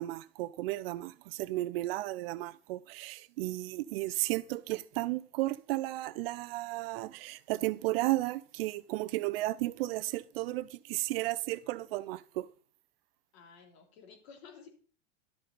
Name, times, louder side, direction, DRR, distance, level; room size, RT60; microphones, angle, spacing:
voice 1, 0.0-12.5, right 18 dB, 55° right, 0.5 m, -34 dB
voice 2, 13.3-14.7, left 6 dB, 65° left, 3.0 m, -53 dB
12.0 x 6.6 x 4.0 m
hypercardioid pair, 120°, 35 cm